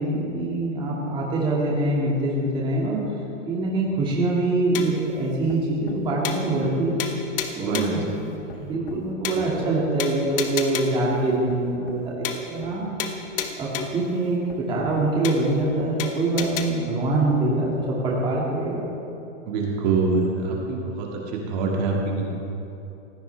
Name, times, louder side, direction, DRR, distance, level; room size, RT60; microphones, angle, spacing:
voice 1, 0.0-3.0 3.5-7.0 7.6-8.1 8.6-12.9 13.6-18.8, right 2 dB, 15° right, -5 dB, 2.2 m, -24 dB
sound 1, 4.7-5.1 5.5-5.6 5.9-6.0 6.2-6.7 7.0-8.0 8.5-8.6 8.9-9.0 9.2-9.7 10.0-11.1 11.5-11.6 11.9-12.0 12.2-12.7 13.0-14.1 14.5-14.6 14.9-15.0 15.2-15.7 16.0-16.7, left 7 dB, 45° left, 1.4 m, -31 dB
voice 2, 7.6-8.0 8.5-8.7 19.5-22.3, right 3 dB, 35° right, -2 dB, 2.2 m, -25 dB
20.0 x 16.5 x 3.5 m, 2.9 s
hypercardioid pair, 155°, 37 cm